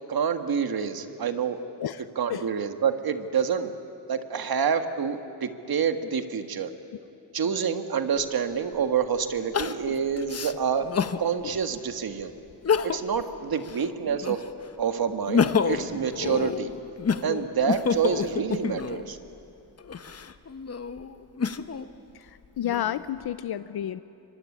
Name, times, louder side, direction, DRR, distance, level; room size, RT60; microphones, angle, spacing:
voice 1, 0.1-1.6 2.2-3.7 4.1-6.7 7.3-10.9 11.2-12.3 12.8-14.4 14.8-16.7 17.2-19.2, right 7 dB, 70° right, 8 dB, 1.7 m, -27 dB
Crying sobbing, 8.2-8.3 9.5-11.2 11.8-11.9 12.5-13.2 13.6-14.6 15.1-19.1 19.8-21.9 22.4-23.2, left 6 dB, 40° left, 1.0 m, -28 dB
voice 2, 22.1-24.0, left 11 dB, 75° left, 14 dB, 0.7 m, -31 dB
24.5 x 24.5 x 9.9 m, 2.9 s
wide cardioid pair, 110°, 38 cm